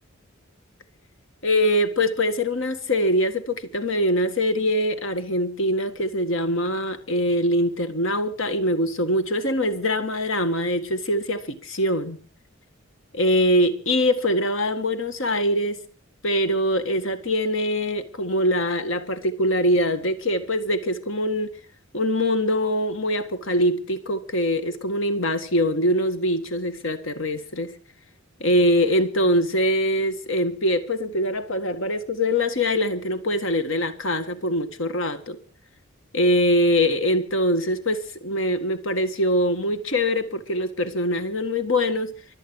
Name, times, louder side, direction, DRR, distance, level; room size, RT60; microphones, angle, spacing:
voice 1, 1.4-12.2 13.1-15.8 16.2-21.5 21.9-27.7 28.4-35.4 36.1-42.1, equal, 65° left, 1.9 m, -23 dB
24.0 x 8.7 x 6.4 m
head